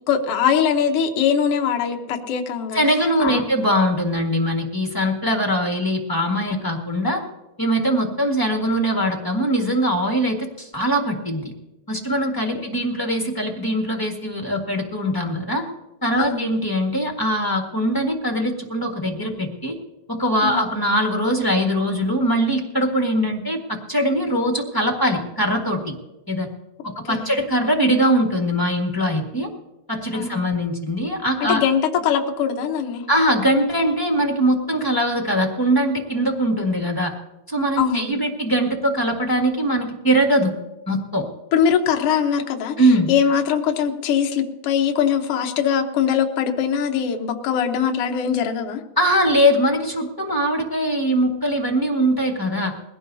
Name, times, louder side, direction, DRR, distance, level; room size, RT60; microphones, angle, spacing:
voice 1, 0.1-2.8 3.2-3.4 12.6-12.7 16.2-16.5 20.4-20.6 27.1-27.3 30.1-30.4 31.5-33.1 37.8-38.2 41.5-48.8, left 8 dB, 60° left, 3 dB, 1.8 m, -22 dB
voice 2, 2.7-7.2 7.6-11.5 11.9-15.6 16.0-19.8 20.1-25.9 26.3-26.5 26.8-29.5 29.9-31.6 33.1-37.1 37.5-40.5 40.9-41.2 42.8-43.1 49.0-52.7, equal, 15° left, 0 dB, 0.8 m, -21 dB
20.5 x 17.0 x 2.8 m, 1.0 s
omnidirectional pair, 3.4 m